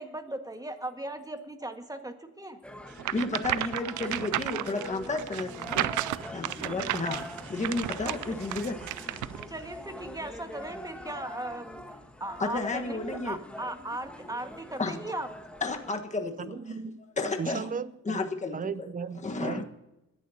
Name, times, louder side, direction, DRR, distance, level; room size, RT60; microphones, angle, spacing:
voice 1, 0.0-2.6 6.6-7.0 8.1-8.4 9.5-11.8 12.2-15.3 17.7-17.8, right 1 dB, 10° right, 6 dB, 1.7 m, -38 dB
sound 1, 2.6-15.9, left 1 dB, 5° left, 1.4 m, -44 dB
voice 2, 2.8-5.9 6.3-7.2 7.5-8.8 12.4-13.4 14.8-15.0 15.6-16.5 17.2-17.6 18.0-18.9 19.2-19.6, left 3 dB, 25° left, 4 dB, 1.4 m, -32 dB
sound 2, 3.0-9.5, right 15 dB, 75° right, 0.5 m, -33 dB
voice 3, 16.4-17.0 17.4-18.3 18.5-19.6, right 6 dB, 25° right, 17 dB, 0.6 m, -36 dB
21.0 x 11.0 x 2.8 m, 0.95 s
cardioid pair, 90°, 30 cm